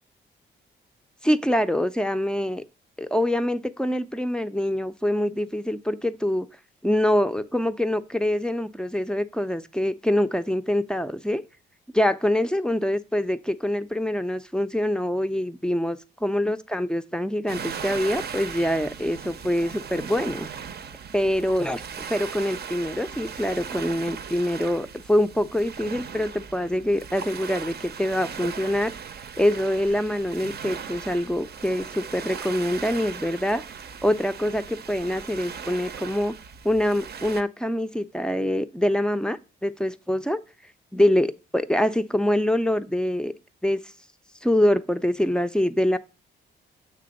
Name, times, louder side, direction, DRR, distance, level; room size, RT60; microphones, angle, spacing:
voice 1, 1.2-2.6 3.0-6.5 6.8-11.4 11.9-20.5 21.1-21.8 22.1-28.9 29.4-33.6 34.0-36.3 36.6-40.4 40.9-43.3 43.6-43.8 44.4-46.0, left 1 dB, 5° left, 0.4 m, -25 dB
sound 1, 17.5-37.4, right 7 dB, 55° right, 0.6 m, -38 dB
6.8 x 3.4 x 5.1 m
cardioid pair, 80°, 20 cm